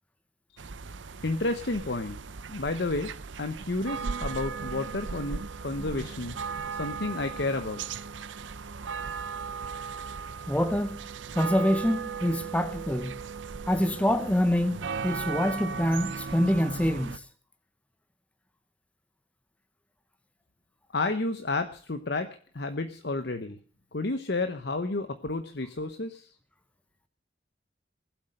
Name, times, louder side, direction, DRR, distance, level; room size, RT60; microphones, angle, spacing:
sound 1, 0.6-17.2, right 5 dB, 80° right, 0.7 m, -37 dB
voice 1, 1.2-2.2 2.5-3.1 3.4-6.4 6.8-7.8 20.9-22.3 22.5-23.6 23.9-26.3, left 2 dB, 60° left, 0.9 m, -31 dB
voice 2, 10.5-11.0 11.3-13.1 13.7-17.2, equal, 5° left, 0.7 m, -26 dB
19.5 x 8.1 x 6.6 m
head